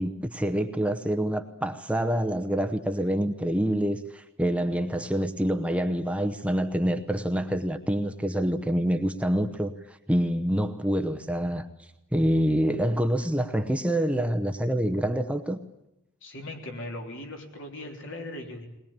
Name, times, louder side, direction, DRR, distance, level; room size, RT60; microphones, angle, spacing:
voice 1, 0.0-11.7 12.1-15.6, equal, 5° right, 8 dB, 0.8 m, -26 dB
voice 2, 16.2-18.7, left 1 dB, 60° left, 3 dB, 3.5 m, -39 dB
21.0 x 20.5 x 8.8 m, 0.86 s
head